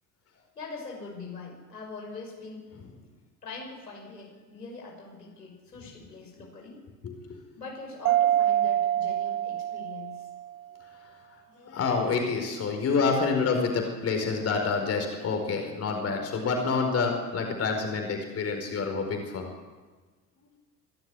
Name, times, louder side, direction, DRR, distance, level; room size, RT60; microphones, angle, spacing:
voice 1, 0.6-2.7 3.4-6.8 7.6-10.3, left 3 dB, 80° left, 0 dB, 6.0 m, -42 dB
voice 2, 7.0-7.4 11.6-19.5, left 4 dB, 30° left, 3 dB, 4.9 m, -28 dB
Mallet percussion, 8.1-10.6, right 12 dB, 60° right, 0.8 m, -26 dB
26.0 x 13.5 x 9.9 m, 1.3 s
figure-of-eight pair, 70°, 48 cm